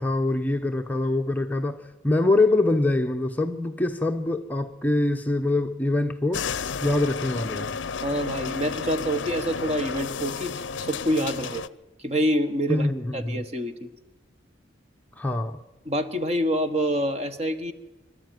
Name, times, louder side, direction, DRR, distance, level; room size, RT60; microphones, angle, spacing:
voice 1, 0.0-6.5 6.8-7.7 12.7-13.4 15.2-15.6, left 2 dB, 10° left, 0.7 m, -24 dB
sound 1, 6.3-11.7, left 5 dB, 75° left, 0.6 m, -32 dB
voice 2, 8.0-11.6 12.0-12.9 13.1-13.9 15.8-17.7, equal, 35° right, 1.4 m, -26 dB
25.0 x 12.0 x 9.3 m
head